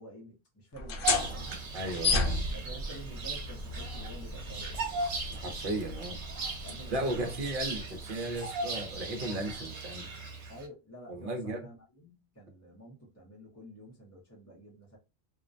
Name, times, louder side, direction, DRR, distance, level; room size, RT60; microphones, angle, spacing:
voice 1, 0.0-1.5 2.5-4.8 6.6-7.4 10.5-15.0, equal, 20° left, 0.6 m, -49 dB
sound 1, 0.7-8.0, left 3 dB, 60° left, 0.7 m, -35 dB
Bird vocalization bird call bird song, 1.0-10.6, right 3 dB, 80° right, 1.0 m, -38 dB
voice 2, 1.7-2.4 5.3-6.2 6.9-10.1 11.1-11.6, right 1 dB, 55° right, 0.9 m, -35 dB
2.5 x 2.1 x 2.5 m
omnidirectional pair, 1.1 m